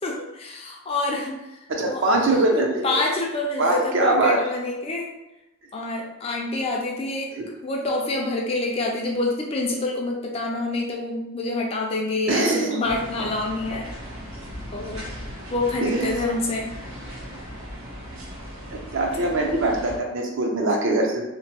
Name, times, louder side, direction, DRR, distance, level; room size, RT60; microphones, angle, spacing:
voice 1, 0.0-2.0 2.8-5.1 5.7-7.3 7.6-13.9 14.7-15.1 15.5-16.7 19.2-19.5, left 2 dB, 25° left, -1 dB, 0.3 m, -27 dB
voice 2, 1.7-3.0 3.6-4.4 7.3-7.5 12.3-12.8 15.8-16.2 18.7-21.2, right 2 dB, 55° right, 1 dB, 0.5 m, -22 dB
sound 1, 12.8-20.0, equal, 75° right, 1.1 m, -37 dB
2.8 x 2.1 x 2.8 m, 0.95 s
head